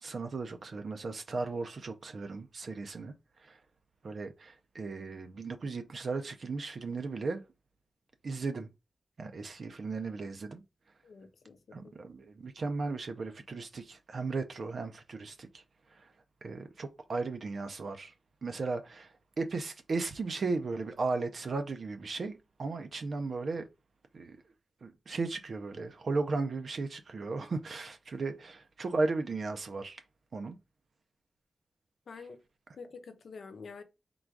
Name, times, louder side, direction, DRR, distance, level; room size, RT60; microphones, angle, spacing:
voice 1, 0.0-3.1 3.4-3.6 4.0-7.4 8.2-8.7 9.2-10.6 11.7-15.6 15.9-16.1 16.4-18.1 18.4-23.7 24.1-24.4 24.8-30.0 30.3-30.6, right 3 dB, 65° right, 0.5 m, -36 dB
voice 2, 11.0-11.9 32.1-32.4 32.7-33.8, left 4 dB, 90° left, 0.6 m, -48 dB
3.8 x 2.3 x 4.5 m
wide cardioid pair, 130°, 0 cm